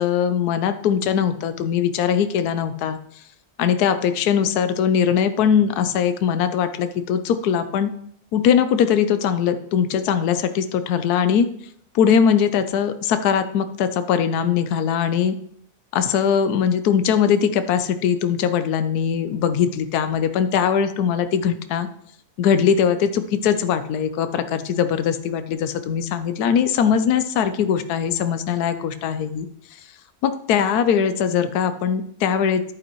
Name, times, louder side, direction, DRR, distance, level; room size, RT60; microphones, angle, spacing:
voice 1, 0.0-3.0 3.6-7.9 8.3-11.5 11.9-15.4 15.9-21.9 22.4-29.8 30.2-32.8, left 8 dB, 80° left, 10 dB, 1.2 m, -21 dB
10.5 x 9.3 x 3.0 m, 0.67 s
omnidirectional pair, 1.6 m